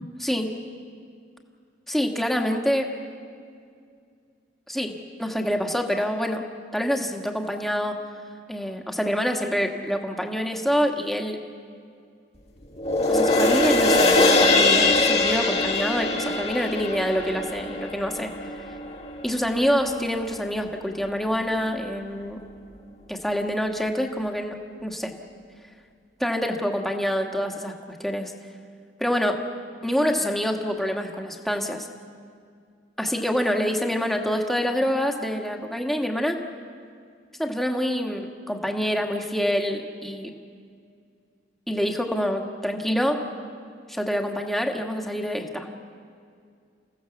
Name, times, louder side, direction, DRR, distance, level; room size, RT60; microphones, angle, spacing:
voice 1, 0.2-0.6 1.9-2.9 4.7-7.9 8.5-11.4 13.1-18.3 19.2-22.4 23.1-25.1 26.2-28.3 29.0-29.4 29.8-31.9 33.0-36.4 37.4-40.3 41.7-43.2 43.9-45.7, equal, ahead, 2 dB, 1.7 m, -26 dB
sound 1, 12.8-19.3 19.8-19.9, left 2 dB, 40° left, 2.1 m, -22 dB
29.5 x 16.5 x 7.1 m, 2.2 s
head